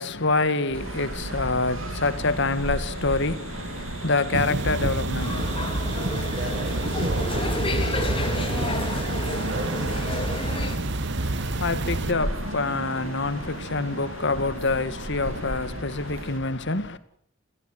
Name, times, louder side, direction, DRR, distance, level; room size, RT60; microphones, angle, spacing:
voice 1, 0.0-5.9 11.2-17.0, left 3 dB, 60° left, 2.1 m, -26 dB
sound 1, 0.7-16.4, right 2 dB, 75° right, 2.8 m, -34 dB
sound 2, 4.3-12.1, right 2 dB, 60° right, 1.3 m, -29 dB
sound 3, 5.2-10.8, left 2 dB, 25° left, 3.2 m, -32 dB
voice 2, 6.4-9.2 9.5-10.4, right 1 dB, 40° right, 7.6 m, -37 dB
27.5 x 16.5 x 9.3 m
head